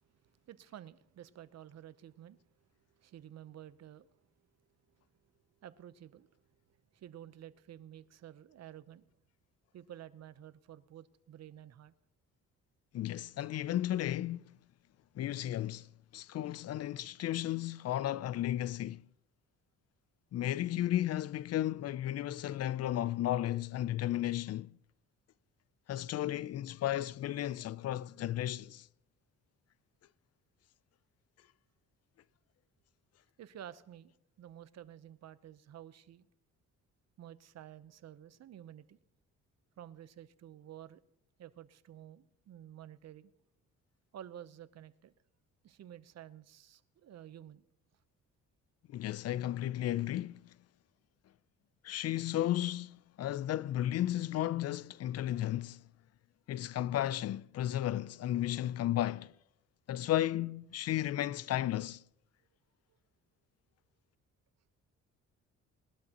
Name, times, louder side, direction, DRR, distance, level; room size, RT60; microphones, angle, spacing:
voice 1, 0.2-2.4 2.9-4.1 4.9-5.0 5.6-6.3 6.9-9.0 9.7-11.9 33.4-36.3 37.2-39.0 39.8-41.0 41.4-43.3 44.1-45.1 45.6-47.7, right 11 dB, 60° right, 0.8 m, -51 dB
voice 2, 12.9-14.5 15.2-19.0 20.3-24.7 25.9-28.9 48.9-50.5 51.8-55.8 56.5-59.3 59.9-62.0, left 13 dB, 55° left, 0.4 m, -34 dB
20.5 x 12.0 x 3.0 m
cardioid pair, 90°, 30 cm